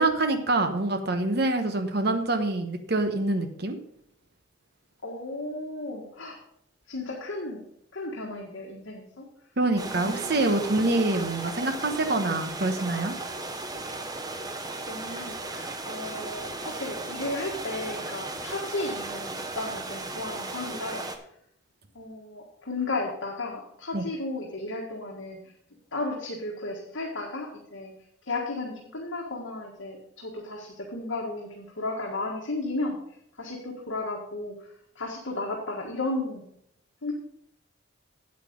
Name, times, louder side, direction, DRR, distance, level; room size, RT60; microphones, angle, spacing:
voice 1, 0.0-3.8 9.6-13.1 23.9-24.1, right 2 dB, 55° right, 7 dB, 1.2 m, -25 dB
voice 2, 5.0-6.4 6.9-7.6 7.9-9.2 9.8-10.5 14.8-21.1 21.9-25.4 25.9-27.9 28.2-33.0 33.4-34.6 34.9-36.5 37.0-37.1, left 2 dB, 75° left, -2 dB, 1.7 m, -34 dB
sound 1, 9.8-21.2, right 2 dB, 20° right, 0.8 m, -36 dB
8.6 x 8.4 x 5.2 m, 0.71 s
head